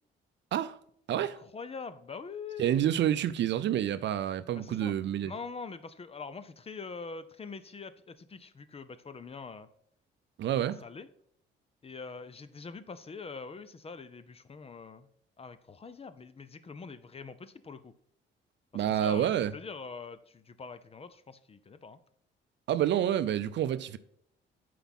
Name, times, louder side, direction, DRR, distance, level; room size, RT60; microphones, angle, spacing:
voice 1, 1.2-2.8 4.5-4.9 5.2-9.7 10.4-11.1 11.8-15.1 15.4-17.9 18.7-22.0, left 4 dB, 30° left, 0.6 m, -44 dB
voice 2, 2.6-5.3 10.4-10.8 18.7-19.5 22.7-24.0, right 11 dB, 65° right, 0.5 m, -28 dB
8.0 x 4.7 x 4.1 m
cardioid pair, 90°, 20 cm